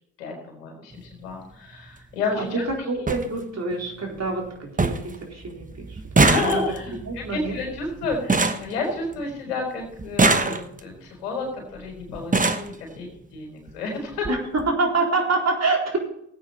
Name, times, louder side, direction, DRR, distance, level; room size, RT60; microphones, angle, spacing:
voice 1, 0.2-2.6 6.2-14.3, left 3 dB, 85° left, 1 dB, 4.2 m, -31 dB
sound 1, 0.9-1.1 2.4-2.5 2.7-2.8 3.1-3.3 3.7-4.2 4.5-4.6 4.8-5.2 5.4-9.4 10.0-11.0 11.8-11.9 12.2-12.7 13.7-13.8 14.1-14.3 14.6-14.7, right 3 dB, 15° right, 1.2 m, -23 dB
voice 2, 2.8-6.6 7.1-7.6 14.3-16.0, right 3 dB, 35° right, 0 dB, 4.1 m, -26 dB
17.0 x 8.6 x 4.2 m, 0.75 s
hypercardioid pair, 55°, 46 cm